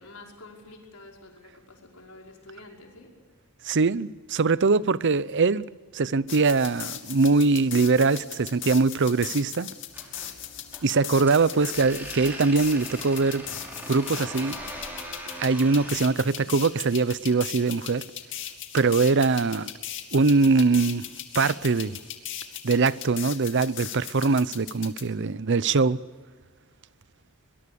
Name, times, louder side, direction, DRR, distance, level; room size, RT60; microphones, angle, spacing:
voice 1, 0.0-3.1, left 2 dB, 80° left, 5.5 m, -48 dB
voice 2, 3.6-5.6 5.9-9.7 10.8-13.4 13.9-14.6 15.4-18.0 18.7-19.7 20.1-21.1 21.3-22.0 22.6-26.0, right 4 dB, 55° right, 0.7 m, -22 dB
sound 1, 6.3-25.0, left 11 dB, 60° left, 2.4 m, -38 dB
sound 2, 9.9-16.1, equal, 10° right, 5.8 m, -41 dB
23.5 x 21.5 x 7.0 m
head